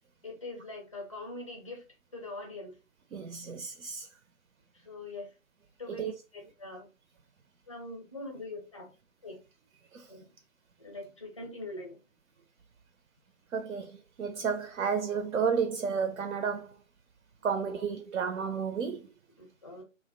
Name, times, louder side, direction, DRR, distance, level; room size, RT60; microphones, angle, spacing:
voice 1, 0.2-1.8 2.1-2.7 4.9-5.3 5.8-6.9 7.7-8.9 9.2-9.4 10.1-10.2 10.8-12.0 17.6-17.7 19.4-19.8, left 2 dB, 25° left, 0.5 m, -42 dB
voice 2, 3.1-4.1 5.9-6.1 9.9-10.1 13.5-16.8 17.4-19.1, right 6 dB, 75° right, 0.5 m, -32 dB
2.4 x 2.0 x 2.5 m
figure-of-eight pair, 145°, 40 cm